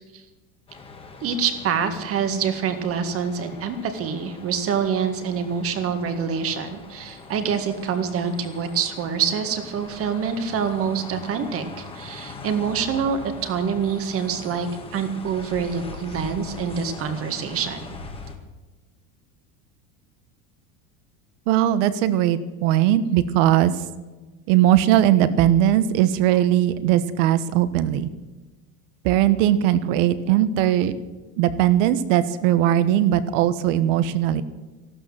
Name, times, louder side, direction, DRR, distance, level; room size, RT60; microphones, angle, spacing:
sound 1, 0.7-18.4, left 3 dB, 15° left, 1.7 m, -41 dB
voice 1, 1.2-17.9, right 6 dB, 35° right, 8 dB, 1.9 m, -26 dB
voice 2, 21.5-23.8 24.5-28.1 29.0-30.9 31.4-34.4, right 12 dB, 65° right, 14 dB, 1.3 m, -19 dB
14.0 x 12.5 x 7.5 m, 1.2 s
supercardioid pair, 155°, 40 cm